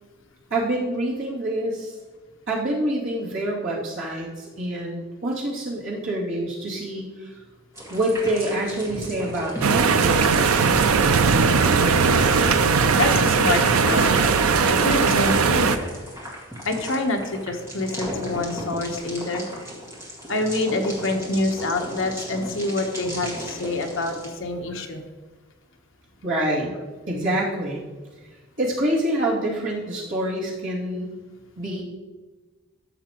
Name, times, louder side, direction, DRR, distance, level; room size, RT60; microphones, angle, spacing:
voice 1, 0.5-2.0 2.5-7.3 7.9-10.3 26.2-26.7 27.1-27.8 28.6-31.2 31.6-31.8, right 1 dB, 60° right, -6 dB, 2.5 m, -26 dB
sound 1, 7.7-24.3, equal, 15° right, 1.9 m, -36 dB
sound 2, 9.6-15.8, right 5 dB, 80° right, 0.5 m, -19 dB
voice 2, 12.9-14.3 14.6-15.7 16.6-19.4 20.3-25.0, left 2 dB, 65° left, 3 dB, 1.0 m, -26 dB
13.5 x 6.9 x 3.0 m, 1.3 s
head